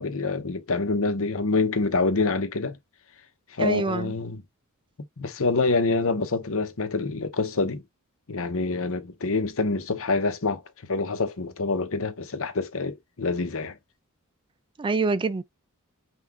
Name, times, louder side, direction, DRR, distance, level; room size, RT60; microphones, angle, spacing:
voice 1, 0.0-2.8 3.6-4.4 5.2-7.8 8.3-10.6 10.9-13.8, left 3 dB, 65° left, 1.0 m, -26 dB
voice 2, 3.6-4.1 14.8-15.4, right 3 dB, 20° right, 0.3 m, -25 dB
5.9 x 2.6 x 3.5 m
head